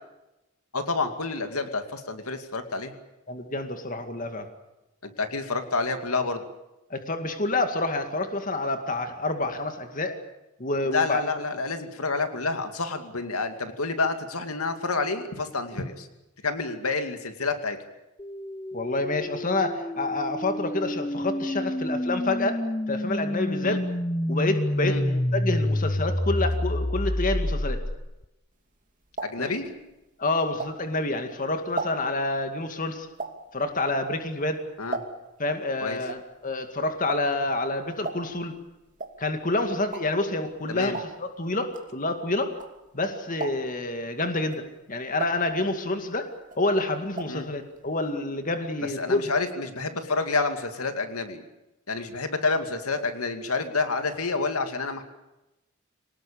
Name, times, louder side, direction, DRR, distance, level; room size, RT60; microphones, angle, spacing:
voice 1, 0.7-2.9 5.0-6.4 10.8-16.1 16.4-17.8 23.6-23.8 24.8-25.0 29.2-29.7 34.8-35.0 35.8-36.0 40.7-41.0 47.3-47.5 48.8-51.4 51.9-55.0, left 3 dB, 80° left, 7 dB, 2.4 m, -28 dB
voice 2, 3.3-4.5 6.9-10.2 10.6-11.2 18.7-23.8 24.3-27.8 29.4-29.5 30.2-33.1 33.5-34.6 35.4-38.5 39.2-42.5 42.9-46.3 46.6-49.2, left 2 dB, 40° left, 6 dB, 2.3 m, -28 dB
sound 1, 18.2-28.2, left 1 dB, 15° left, 0.8 m, -28 dB
sound 2, 28.6-31.1 31.5-35.4 35.7-43.0 43.3-43.9 44.4-46.1 46.4-47.5 47.7-47.8 48.1-48.2, right 3 dB, 35° right, 2.6 m, -38 dB
25.0 x 19.0 x 8.7 m, 0.97 s
head